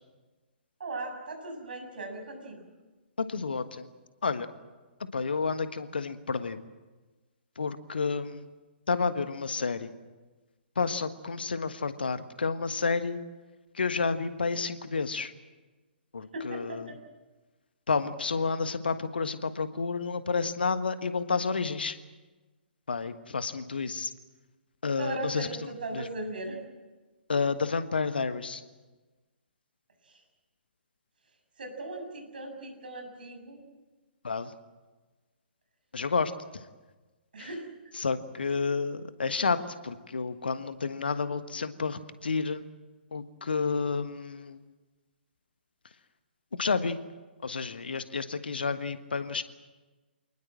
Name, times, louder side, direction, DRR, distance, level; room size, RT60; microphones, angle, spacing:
voice 1, 0.8-2.6 16.3-17.0 25.0-26.6 30.0-30.2 31.6-33.6 37.3-37.6, right 2 dB, 55° right, 5 dB, 7.3 m, -38 dB
voice 2, 3.2-3.9 4.2-4.5 5.1-6.6 7.6-8.5 8.9-9.9 10.7-13.2 13.7-15.3 16.1-16.9 17.9-22.0 22.9-24.1 24.8-26.1 27.3-28.6 34.2-34.5 35.9-36.3 37.4-37.5 37.9-42.6 43.1-44.6 46.6-47.0 47.4-49.4, left 4 dB, 65° left, 11 dB, 1.5 m, -30 dB
27.0 x 20.0 x 7.7 m, 1.2 s
figure-of-eight pair, 125°, 6 cm